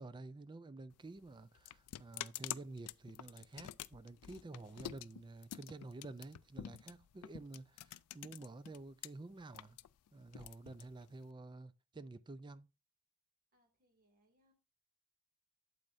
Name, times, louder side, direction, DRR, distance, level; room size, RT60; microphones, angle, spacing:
voice 1, 0.0-9.8 10.1-12.7, right 2 dB, 20° right, 0.3 m, -50 dB
sound 1, 0.9-9.1 9.4-11.3, left 12 dB, 90° left, 0.3 m, -48 dB
voice 2, 13.5-14.5, equal, 40° right, 2.3 m, -75 dB
8.7 x 7.8 x 2.6 m
head